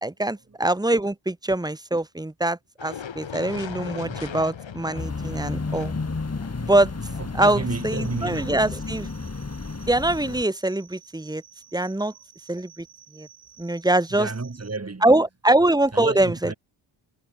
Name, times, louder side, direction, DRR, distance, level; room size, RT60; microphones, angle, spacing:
voice 1, 0.0-5.9 6.6-6.9 7.3-9.1 9.9-11.4 11.7-12.1 12.5-12.8 13.1-13.3 13.6-14.3 15.0-16.5, right 1 dB, 10° right, 1.4 m, -23 dB
sound 1, 2.8-8.9, left 7 dB, 65° left, 5.1 m, -39 dB
voice 2, 4.0-4.4 5.1-5.3 5.7-5.8 7.2-8.7 14.1-15.1 15.9-16.5, right 3 dB, 30° right, 7.4 m, -32 dB
sound 2, 5.0-10.4, left 3 dB, 30° left, 4.8 m, -32 dB
sound 3, 7.6-14.8, right 9 dB, 80° right, 5.8 m, -52 dB
cardioid pair, 80°, 49 cm